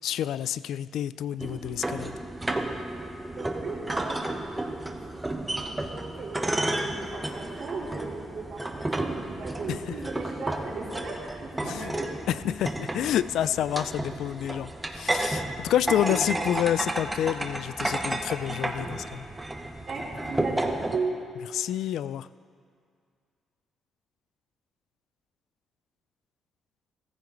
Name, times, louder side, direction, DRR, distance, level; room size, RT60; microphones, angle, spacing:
voice 1, 0.0-2.2 9.7-9.8 11.6-11.9 12.3-19.3 21.6-22.3, left 11 dB, 75° left, 17 dB, 0.3 m, -28 dB
sound 1, 1.4-21.0, right 1 dB, 15° right, 1.1 m, -32 dB
voice 2, 3.3-5.0 5.2-8.6 9.0-11.2 11.4-12.1 15.9-16.2 19.9-21.2, right 4 dB, 60° right, -6 dB, 3.6 m, -36 dB
15.0 x 14.0 x 3.9 m, 2.2 s
cardioid pair, 90°, 0 cm